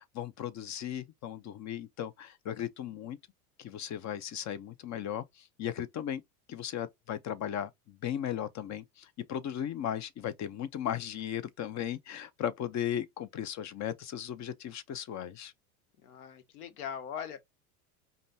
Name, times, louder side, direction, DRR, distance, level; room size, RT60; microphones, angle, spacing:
voice 1, 0.0-3.2 3.6-6.2 6.5-15.5, left 10 dB, 40° left, 0.9 m, -36 dB
voice 2, 16.0-17.4, left 8 dB, 80° left, 1.4 m, -40 dB
5.2 x 2.6 x 2.8 m
hypercardioid pair, 85°, 45 cm